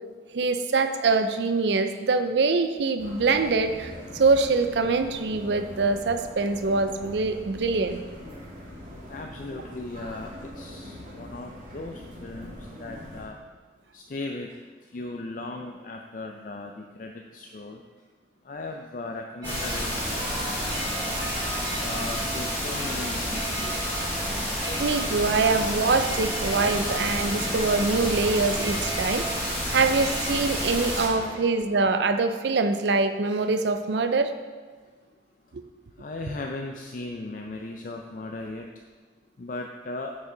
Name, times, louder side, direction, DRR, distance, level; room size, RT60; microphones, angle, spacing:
voice 1, 0.3-8.0 23.6-23.7 24.6-34.3 35.5-35.6, right 3 dB, 75° right, 9 dB, 0.5 m, -24 dB
sound 1, 3.0-13.3, equal, 50° right, 2.3 m, -42 dB
voice 2, 9.1-13.4 13.9-14.6 14.9-17.8 18.4-20.5 21.8-23.7 24.7-24.9 31.3-31.4 36.0-38.7 39.4-40.2, left 2 dB, 45° left, 2 dB, 0.4 m, -37 dB
sound 2, 19.4-31.1, equal, 15° left, 2.4 m, -30 dB
sound 3, 19.4-31.4, right 1 dB, 20° right, 0.9 m, -36 dB
9.3 x 5.6 x 3.8 m, 1.4 s
head